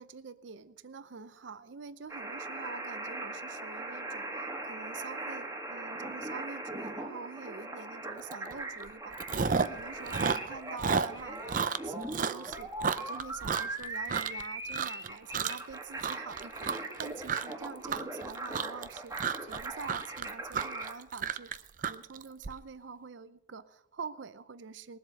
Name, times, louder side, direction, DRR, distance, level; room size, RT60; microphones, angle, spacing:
voice 1, 0.0-12.7 13.0-16.7 17.0-25.0, right 5 dB, 85° right, 13 dB, 0.6 m, -46 dB
sound 1, 2.1-20.9, right 2 dB, 15° right, 1.8 m, -40 dB
Chewing mastication, 8.3-8.5 8.8-9.8 10.1-14.4 14.7-15.1 15.3-15.7 16.0-22.5, right 6 dB, 45° right, 0.5 m, -32 dB
20.5 x 7.8 x 6.4 m, 0.84 s
head